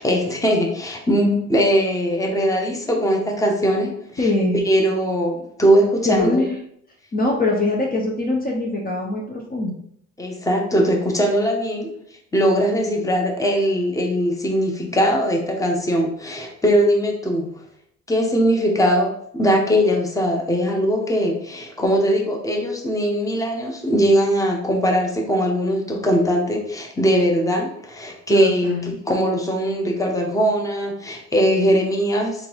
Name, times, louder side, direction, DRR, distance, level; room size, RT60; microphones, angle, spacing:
voice 1, 0.0-4.3 4.6-6.4 10.2-11.9 12.3-17.5 18.1-32.5, equal, 10° left, 0 dB, 1.0 m, -20 dB
voice 2, 4.2-4.6 6.1-6.6 7.1-9.8 28.3-28.9, left 2 dB, 30° left, -1 dB, 0.8 m, -22 dB
3.7 x 2.6 x 4.6 m, 0.69 s
cardioid pair, 90°, 30 cm